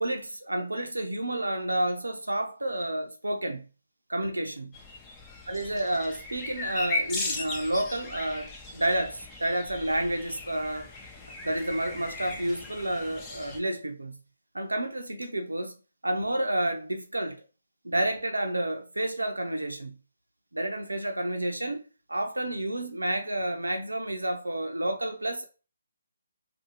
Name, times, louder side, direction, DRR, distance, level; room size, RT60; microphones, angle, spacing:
voice 1, 0.0-3.6 4.1-4.7 5.5-10.9 11.4-14.2 14.5-15.7 16.0-17.4 17.8-20.0 20.5-21.8 22.1-25.4, right 1 dB, 90° right, 0.5 m, -30 dB
sound 1, 4.7-13.6, left 2 dB, 15° left, 0.5 m, -37 dB
2.6 x 2.6 x 2.8 m
figure-of-eight pair, 145°, 0 cm